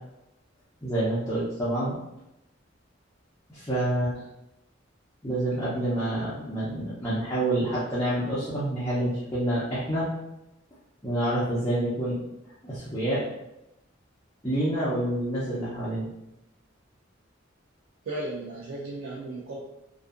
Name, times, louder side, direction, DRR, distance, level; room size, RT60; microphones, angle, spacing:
voice 1, 0.8-2.0 3.5-4.2 5.2-10.1 11.0-12.2 12.6-13.2 14.4-16.1, right 1 dB, 15° left, -10 dB, 0.6 m, -27 dB
voice 2, 18.1-19.6, right 2 dB, 75° right, -4 dB, 0.4 m, -35 dB
2.6 x 2.3 x 2.4 m, 0.90 s
head